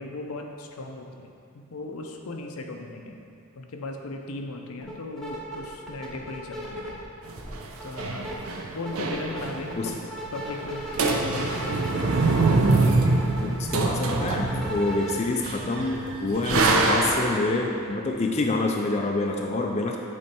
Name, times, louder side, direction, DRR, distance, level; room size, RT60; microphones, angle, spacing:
voice 1, 0.0-3.2 3.6-7.0 7.8-8.4 8.7-9.9 10.3-11.9, left 2 dB, 85° left, 3 dB, 0.6 m, -37 dB
sound 1, 4.8-4.9 5.2-7.0 7.4-8.3 8.7-15.2, right 1 dB, ahead, 0.7 m, -36 dB
sound 2, 7.3-9.8 10.0-10.1 10.4-10.7 10.9-17.5, right 3 dB, 80° right, 0.5 m, -25 dB
voice 2, 13.4-20.0, left 2 dB, 30° left, 1 dB, 0.3 m, -27 dB
8.4 x 3.2 x 4.4 m, 2.5 s
head